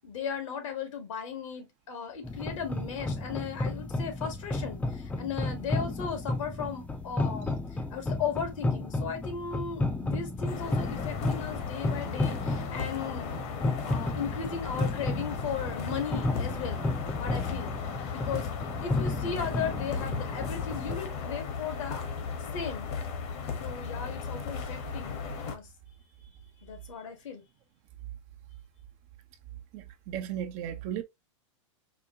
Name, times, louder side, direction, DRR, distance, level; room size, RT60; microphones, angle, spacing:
voice 1, 0.0-7.5 7.9-13.3 13.8-16.9 17.2-17.7 18.1-18.5 18.8-22.1 22.5-22.9 23.6-25.2 25.5-25.7 26.6-27.4, left 6 dB, 75° left, 1.7 m, -36 dB
sound 1, 2.2-21.0, left 2 dB, 10° left, 0.6 m, -33 dB
sound 2, 10.5-25.6, left 6 dB, 60° left, 1.3 m, -36 dB
voice 2, 29.7-31.0, right 10 dB, 45° right, 0.7 m, -35 dB
4.9 x 2.2 x 2.7 m
hypercardioid pair, 115°, 17 cm